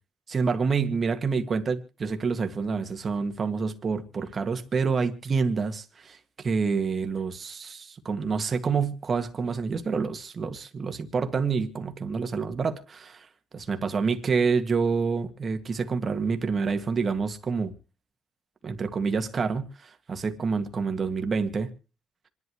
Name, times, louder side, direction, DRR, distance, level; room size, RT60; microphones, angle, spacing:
voice 1, 0.3-13.3 13.5-17.7 18.6-21.7, right 5 dB, 40° right, 1.8 m, -28 dB
26.5 x 11.0 x 3.1 m
cardioid pair, 90°, 0 cm